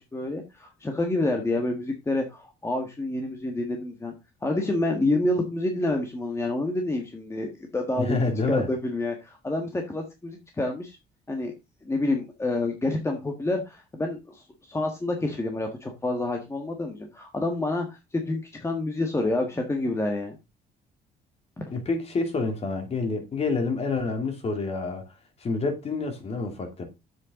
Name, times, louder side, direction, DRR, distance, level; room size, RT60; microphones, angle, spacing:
voice 1, 0.0-4.1 4.4-8.2 8.5-11.0 11.3-11.5 11.8-20.4 21.6-21.7, left 2 dB, 15° left, 1.6 m, -28 dB
voice 2, 8.0-8.7 21.7-25.0 25.4-26.8, left 3 dB, 35° left, 2.9 m, -28 dB
8.2 x 7.8 x 3.8 m
cardioid pair, 110°, 17 cm